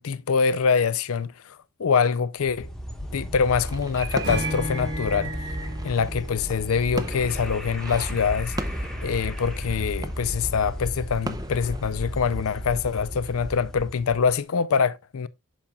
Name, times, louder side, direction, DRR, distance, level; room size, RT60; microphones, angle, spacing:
voice 1, 0.0-2.7 3.1-5.3 5.8-8.6 9.0-15.3, left 6 dB, 75° left, 0.5 m, -24 dB
sound 1, 2.4-14.3, equal, ahead, 1.2 m, -34 dB
sound 2, 3.5-12.9 13.3-13.5, right 2 dB, 15° right, 0.6 m, -38 dB
Acoustic guitar / Strum, 4.2-7.7, equal, 45° right, 2.4 m, -35 dB
8.7 x 7.1 x 2.3 m
head